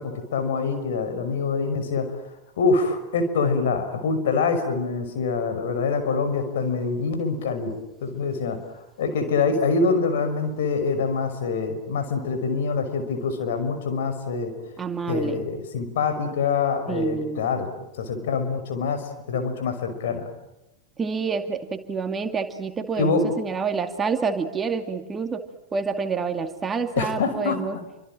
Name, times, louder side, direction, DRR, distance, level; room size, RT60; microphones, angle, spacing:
voice 1, 0.0-2.1 2.6-7.7 8.0-8.6 9.0-14.5 15.1-17.7 18.0-20.3 23.0-23.3 27.0-27.8, left 4 dB, 60° left, 8 dB, 5.6 m, -25 dB
voice 2, 14.8-15.4 16.9-17.4 21.0-25.4 25.7-27.8, right 5 dB, 20° right, 7 dB, 2.4 m, -28 dB
30.0 x 26.0 x 7.6 m, 0.91 s
figure-of-eight pair, 90°, 0 cm